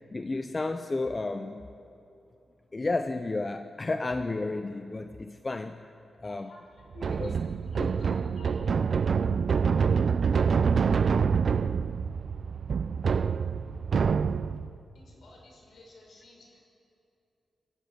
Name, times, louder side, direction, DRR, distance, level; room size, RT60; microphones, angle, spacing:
voice 1, 0.1-1.7 2.7-5.8 6.2-6.5 7.2-7.3 7.8-7.9, left 3 dB, 25° left, 8 dB, 0.7 m, -32 dB
voice 2, 6.2-7.4 7.7-8.5 14.9-16.7, left 1 dB, 65° left, -1 dB, 6.2 m, -53 dB
sound 1, 6.9-14.7, right 6 dB, 60° right, 0.4 m, -26 dB
28.0 x 14.0 x 6.9 m, 2.7 s
wide cardioid pair, 120°, 0 cm